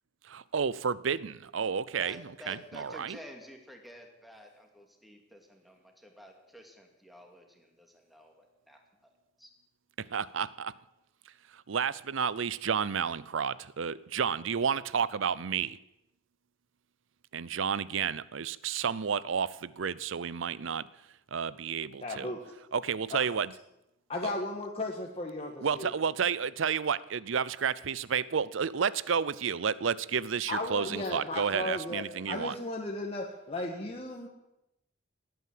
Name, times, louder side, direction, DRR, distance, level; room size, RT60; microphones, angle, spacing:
voice 1, 0.3-3.2 10.1-10.7 11.5-15.8 17.3-20.9 21.3-22.3 22.7-23.5 24.2-24.3 25.6-32.5, right 6 dB, 70° right, 20 dB, 0.6 m, -31 dB
voice 2, 2.0-9.1 9.4-9.5, equal, ahead, 2 dB, 2.4 m, -51 dB
voice 3, 22.0-22.4 23.1-23.2 24.1-25.9 30.5-34.3, left 2 dB, 30° left, -1 dB, 1.6 m, -35 dB
19.0 x 9.5 x 7.7 m, 0.90 s
head